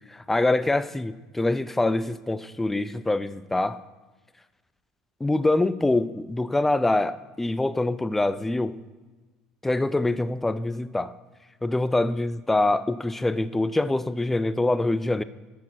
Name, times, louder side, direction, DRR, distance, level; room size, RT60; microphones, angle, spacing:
voice 1, 0.1-3.8 5.2-8.8 9.6-11.1 11.6-15.2, left 2 dB, 10° left, 0.3 m, -25 dB
8.4 x 6.4 x 4.5 m
supercardioid pair, 90°, 2 cm